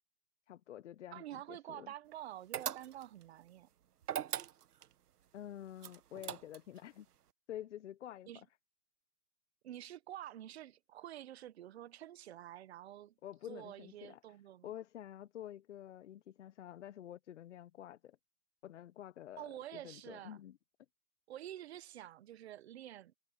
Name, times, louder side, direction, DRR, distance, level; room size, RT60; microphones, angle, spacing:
voice 1, 0.5-1.9 5.3-7.1 7.5-8.3 13.2-14.2 14.6-18.2 18.6-20.6, left 11 dB, 50° left, 1.1 m, -49 dB
voice 2, 1.1-3.7 8.3-8.4 9.6-13.2 13.5-14.7 19.4-20.4 21.3-23.1, right 12 dB, 45° right, 1.2 m, -48 dB
sound 1, 2.5-3.2 4.0-4.9 5.8-6.8, right 10 dB, 80° right, 1.3 m, -40 dB
hypercardioid pair, 160°, 46 cm